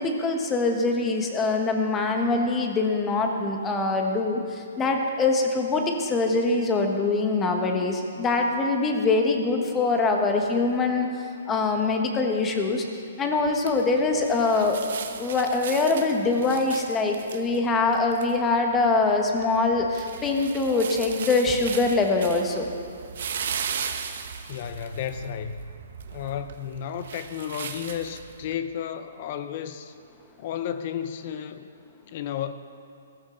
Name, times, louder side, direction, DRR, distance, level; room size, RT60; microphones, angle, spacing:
voice 1, 0.0-12.8 13.2-14.8 15.2-22.7, left 3 dB, 15° left, 3 dB, 1.3 m, -24 dB
sound 1, 13.4-28.5, right 7 dB, 60° right, 1.1 m, -38 dB
voice 2, 24.5-25.7 26.1-29.9 30.4-31.7 32.1-32.5, left 9 dB, 45° left, 10 dB, 0.7 m, -33 dB
16.0 x 13.5 x 3.9 m, 2.4 s
hypercardioid pair, 150°, 0 cm